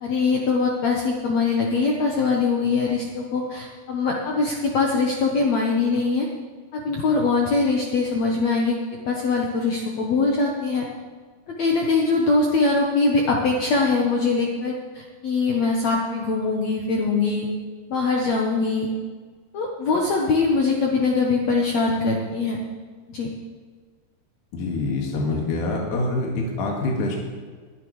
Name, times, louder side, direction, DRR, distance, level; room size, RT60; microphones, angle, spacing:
voice 1, 0.0-6.3 6.7-8.8 9.1-10.9 11.6-17.5 17.9-18.9 19.5-22.6 23.1-23.3, left 4 dB, 75° left, 0 dB, 1.6 m, -22 dB
voice 2, 24.5-27.2, left 2 dB, 55° left, -1 dB, 2.9 m, -25 dB
21.0 x 10.5 x 3.2 m, 1.5 s
omnidirectional pair, 4.6 m